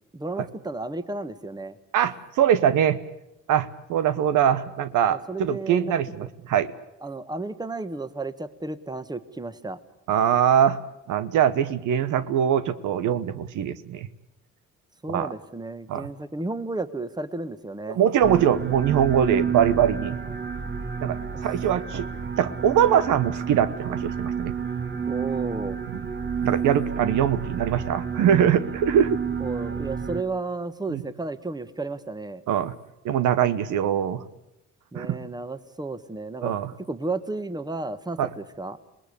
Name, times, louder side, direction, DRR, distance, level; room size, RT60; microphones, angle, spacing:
voice 1, 0.1-1.8 5.1-5.9 7.0-9.8 15.0-18.0 20.3-20.4 25.1-25.8 29.4-32.4 34.9-38.8, right 3 dB, 15° right, 13 dB, 1.4 m, -33 dB
voice 2, 1.9-3.0 3.5-6.7 10.1-10.8 11.1-14.1 15.1-15.3 15.9-16.1 17.9-20.2 21.0-21.2 21.4-22.1 22.4-24.5 26.4-29.2 30.9-31.0 32.5-32.7 33.0-34.2 34.9-35.2 36.4-36.7 38.2-38.3, right 9 dB, 85° right, 13 dB, 1.1 m, -22 dB
sound 1, 18.2-30.2, right 6 dB, 35° right, 1.6 m, -30 dB
27.0 x 19.5 x 8.5 m, 0.89 s
cardioid pair, 90°, 30 cm